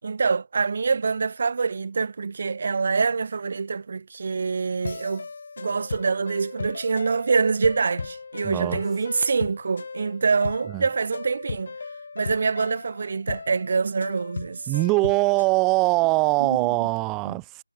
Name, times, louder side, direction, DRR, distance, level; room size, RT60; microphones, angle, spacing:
voice 1, 0.0-5.3 5.6-11.7 12.2-14.7 16.4-16.6 17.3-17.4, right 5 dB, 35° right, 1.1 m, -25 dB
sound 1, 4.8-15.5, left 4 dB, 40° left, 5.3 m, -37 dB
voice 2, 8.4-8.8 10.7-10.8 14.7-17.6, right 24 dB, 10° right, 1.4 m, -22 dB
figure-of-eight pair, 165°, 0 cm